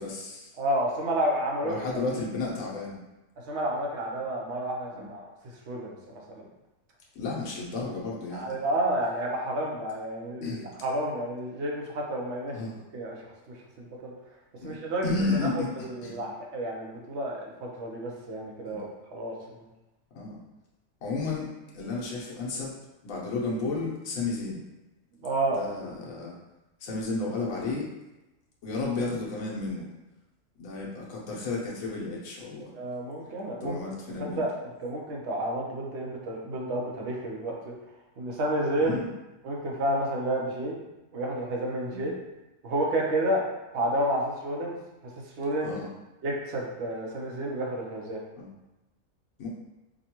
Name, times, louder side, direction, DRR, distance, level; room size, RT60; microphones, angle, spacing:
voice 1, 0.0-0.5 1.6-3.0 4.9-5.0 7.1-8.5 10.4-10.7 12.5-12.8 14.6-14.7 15.0-16.2 18.6-18.8 20.1-20.3 21.0-21.5 21.7-22.7 23.0-24.6 25.5-26.4 26.8-27.9 28.6-29.9 30.6-32.7 33.6-34.4 38.8-39.1 41.9-42.1 45.6-45.9 48.4-48.5 49.4-49.5, left 3 dB, 85° left, -4 dB, 1.3 m, -32 dB
voice 2, 0.6-1.7 3.5-5.3 5.7-5.9 6.3-6.4 8.3-12.6 12.9-13.2 13.5-14.1 14.6-15.1 15.8-19.7 25.2-25.6 32.7-33.8 34.2-34.5 34.8-37.7 38.2-39.0 39.4-40.8 41.1-42.2 42.6-43.4 43.7-44.8 45.4-45.7 46.2-48.2, right 1 dB, 60° right, -1 dB, 1.0 m, -30 dB
5.0 x 2.2 x 2.9 m, 1.0 s
omnidirectional pair, 1.4 m